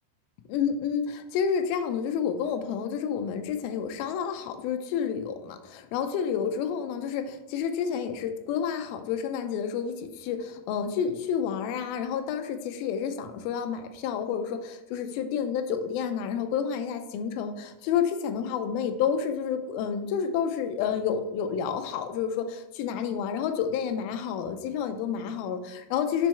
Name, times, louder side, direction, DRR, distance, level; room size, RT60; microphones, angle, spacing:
voice 1, 0.5-26.3, left 7 dB, 85° left, 6 dB, 2.1 m, -29 dB
6.0 x 4.6 x 4.4 m, 1.1 s
omnidirectional pair, 4.9 m